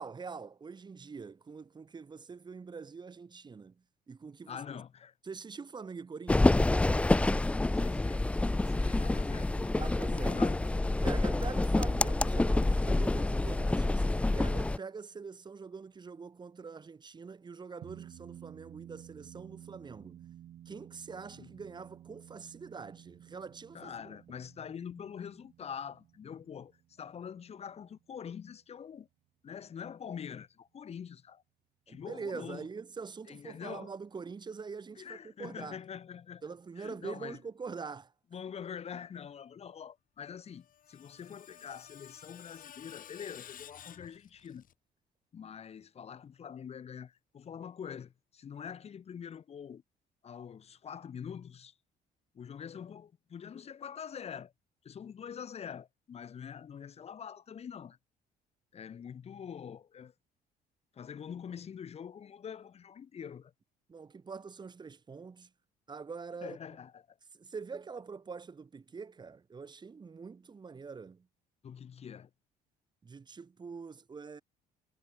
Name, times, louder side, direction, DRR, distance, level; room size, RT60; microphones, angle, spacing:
voice 1, 0.0-3.7 4.1-4.6 5.2-7.3 8.7-9.0 9.8-10.4 11.0-20.3 20.6-24.1 31.9-35.8 36.4-38.1 63.9-65.5 65.9-66.6 67.3-71.3 73.0-74.4, right 5 dB, 25° right, 1.6 m, -44 dB
voice 2, 4.5-5.1 7.8-8.3 8.6-10.6 21.3-21.5 23.7-29.1 29.4-31.4 31.9-32.7 33.3-33.9 35.0-36.4 36.8-37.4 38.3-44.6 45.3-49.8 50.2-51.7 52.3-54.5 54.8-58.0 58.7-60.1 60.9-63.5 66.4-67.2 71.6-72.3, left 7 dB, 40° left, 1.1 m, -45 dB
sound 1, 6.3-14.8, left 2 dB, 5° left, 0.3 m, -27 dB
sound 2, 17.8-28.5, right 11 dB, 60° right, 4.3 m, -54 dB
Screech, 40.4-44.7, left 10 dB, 55° left, 5.2 m, -53 dB
cardioid pair, 110°, 17 cm